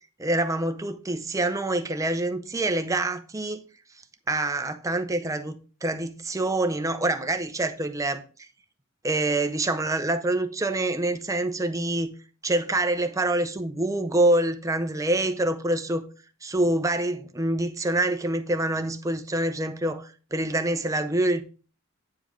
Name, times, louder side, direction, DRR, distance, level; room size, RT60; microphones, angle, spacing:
voice 1, 0.2-3.6 4.3-8.5 9.0-12.2 12.4-16.1 16.4-21.4, right 2 dB, 15° right, 0.6 m, -26 dB
9.3 x 5.1 x 3.7 m
head